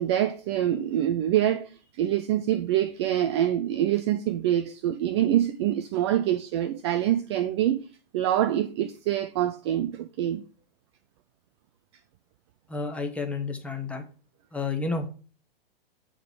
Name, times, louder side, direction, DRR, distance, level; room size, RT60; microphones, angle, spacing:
voice 1, 0.0-7.9 8.1-10.4, right 11 dB, 30° right, 0.4 m, -25 dB
voice 2, 12.7-14.0 14.5-15.1, left 4 dB, 5° left, 0.9 m, -30 dB
7.9 x 3.8 x 4.8 m
figure-of-eight pair, 110°, 30 cm